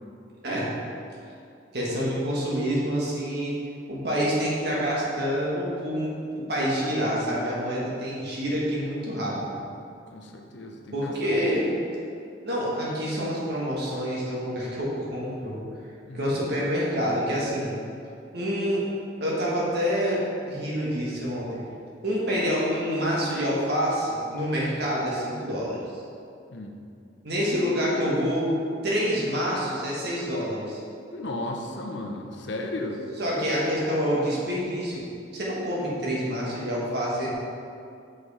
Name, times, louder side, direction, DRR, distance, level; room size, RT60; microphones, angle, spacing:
voice 1, 1.7-3.5 3.9-9.6 10.9-11.7 12.4-15.5 16.1-17.7 18.3-18.8 19.2-20.2 20.5-21.5 22.0-25.8 27.2-28.5 28.8-30.8 33.2-35.0 35.3-37.3, equal, 55° right, -5 dB, 1.6 m, -27 dB
voice 2, 10.1-11.5 16.0-16.3 26.5-26.8 31.1-33.0, left 1 dB, 65° left, 2 dB, 0.7 m, -35 dB
6.1 x 5.1 x 4.2 m, 2.5 s
head